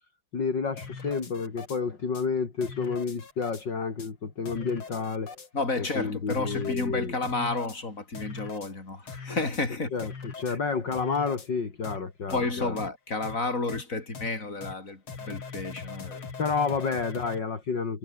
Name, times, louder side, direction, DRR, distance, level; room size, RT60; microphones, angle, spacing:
voice 1, 0.3-5.5 5.8-7.2 9.9-12.8 16.4-18.0, left 5 dB, 55° left, 3.6 m, -30 dB
sound 1, 0.8-1.8 2.1-2.2 2.6-3.6 4.0-4.1 4.5-5.5 5.8-5.9 6.3-6.9 7.2-7.8 8.1-8.7 9.1-9.6 10.0-10.6 10.9-11.5 11.8-12.0 12.3-12.4 12.8-12.9 13.2-13.4 13.7-13.8 14.1-14.3 14.6-14.7 15.1-17.4, left 5 dB, 75° left, 4.1 m, -41 dB
voice 2, 5.5-9.9 10.5-10.6 12.3-16.3, left 3 dB, 35° left, 5.0 m, -31 dB
omnidirectional pair, 2.4 m